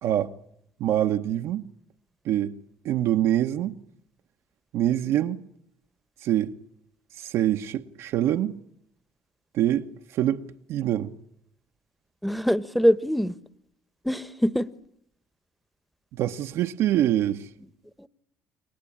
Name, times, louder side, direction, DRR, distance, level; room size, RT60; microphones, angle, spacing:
voice 1, 0.0-0.3 0.8-1.6 2.2-2.6 2.8-3.8 4.7-5.4 6.2-6.5 7.2-8.6 9.5-10.4 10.7-11.1 16.1-17.5, right 12 dB, 75° right, 1.1 m, -25 dB
voice 2, 12.2-13.3 14.0-14.7 18.0-18.1, equal, ahead, 1.2 m, -23 dB
29.5 x 22.5 x 8.7 m
supercardioid pair, 75°, 5 cm